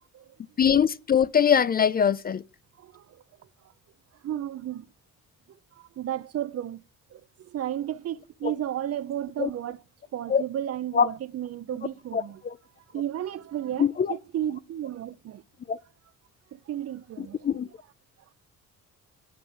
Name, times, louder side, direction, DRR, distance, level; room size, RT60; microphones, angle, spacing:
voice 1, 0.6-2.4 9.4-9.5 10.3-10.4 10.9-11.1 12.1-12.5 13.8-14.2 15.7-15.8 17.2-17.7, left 7 dB, 30° left, 0.4 m, -22 dB
voice 2, 2.8-3.2 4.2-4.9 5.8-6.8 7.1-9.8 10.1-12.4 12.9-15.4 16.5-17.5, right 11 dB, 55° right, 0.6 m, -33 dB
8.3 x 5.8 x 6.7 m
cardioid pair, 90°, 30 cm